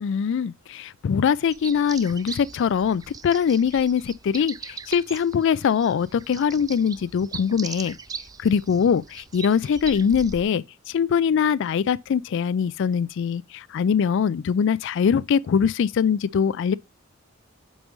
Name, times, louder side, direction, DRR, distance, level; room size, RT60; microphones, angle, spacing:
voice 1, 0.0-8.0 8.4-10.6 10.9-16.7, left 7 dB, 65° left, 0.3 m, -22 dB
sound 1, 1.5-10.4, right 5 dB, 20° right, 0.3 m, -40 dB
6.1 x 5.4 x 3.1 m
head